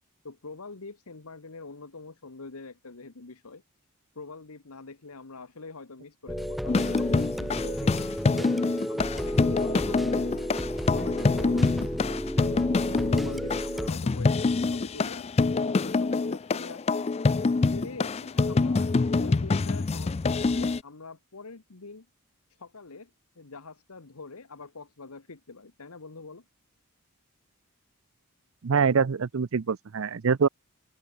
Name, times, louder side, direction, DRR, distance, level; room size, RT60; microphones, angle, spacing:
voice 1, 0.2-3.6 4.1-8.2 8.9-15.3 15.6-17.1 17.7-18.9 19.2-22.1 22.6-23.1 23.4-26.4, left 3 dB, 80° left, 1.3 m, -44 dB
sound 1, 6.3-13.9, equal, ahead, 1.6 m, -32 dB
sound 2, 6.7-20.8, left 3 dB, 30° left, 0.3 m, -26 dB
voice 2, 28.6-30.5, right 5 dB, 65° right, 0.5 m, -24 dB
head